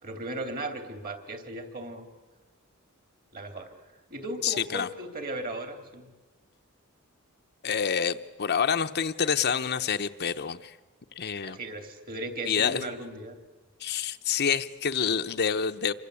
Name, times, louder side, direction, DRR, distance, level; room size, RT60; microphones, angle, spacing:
voice 1, 0.0-2.1 3.3-3.7 4.1-6.1 11.4-13.3, right 2 dB, 45° right, 7 dB, 3.3 m, -37 dB
voice 2, 4.4-4.9 7.6-10.8 11.2-11.6 12.5-12.8 13.8-15.9, left 7 dB, 50° left, 8 dB, 0.8 m, -27 dB
28.0 x 24.0 x 8.4 m, 1.2 s
head